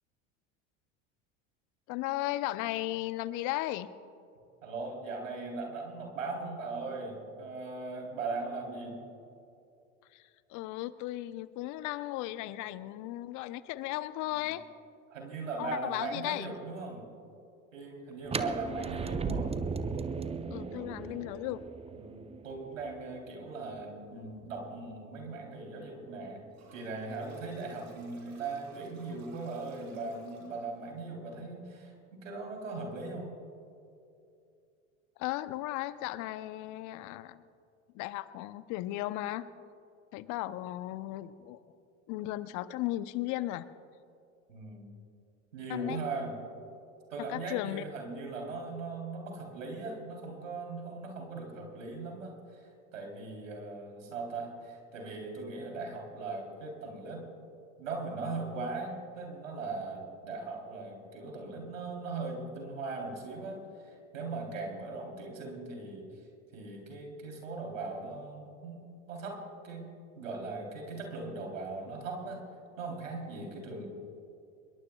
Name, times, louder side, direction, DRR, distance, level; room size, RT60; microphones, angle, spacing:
voice 1, 1.9-3.9 10.1-14.6 15.6-16.5 18.4-18.5 20.5-21.6 35.2-37.4 37.9-39.4 40.1-41.6 42.1-43.7 45.7-46.0 47.2-47.8, left 16 dB, 50° left, 14 dB, 0.8 m, -36 dB
voice 2, 4.6-9.0 15.1-17.0 17.7-19.6 21.9-26.4 26.7-33.4 44.5-44.9 45.5-46.3 47.1-57.3 57.8-66.1 66.5-69.9 70.2-72.4 72.8-73.9, right 3 dB, 80° right, 1 dB, 3.6 m, -39 dB
sound 1, 18.2-24.1, right 5 dB, 15° right, 0.7 m, -37 dB
Toilet flush, 26.5-30.9, right 4 dB, 40° right, 4.1 m, -58 dB
25.0 x 22.0 x 2.4 m, 2.6 s
hypercardioid pair, 80°, 38 cm